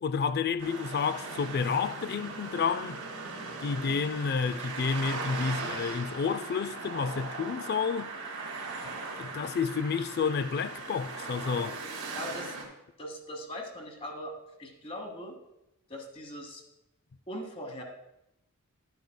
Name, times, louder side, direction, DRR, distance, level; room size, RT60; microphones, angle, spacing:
voice 1, 0.0-3.0 3.6-8.1 9.2-11.8, left 5 dB, 45° left, 0.4 m, -30 dB
sound 1, 0.6-12.6, right 3 dB, 85° right, 2.5 m, -39 dB
voice 2, 12.1-12.5 13.0-15.4 15.9-16.6 17.3-17.8, equal, 25° left, 1.2 m, -40 dB
11.5 x 9.5 x 2.2 m
head